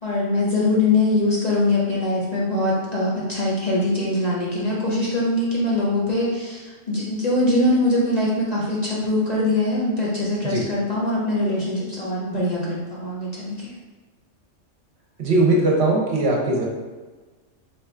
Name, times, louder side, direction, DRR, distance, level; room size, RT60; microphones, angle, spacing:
voice 1, 0.0-13.7, left 2 dB, 40° left, -6 dB, 0.7 m, -22 dB
voice 2, 15.2-16.7, right 2 dB, 65° right, -2 dB, 0.9 m, -19 dB
3.2 x 2.4 x 4.2 m, 1.3 s
omnidirectional pair, 1.3 m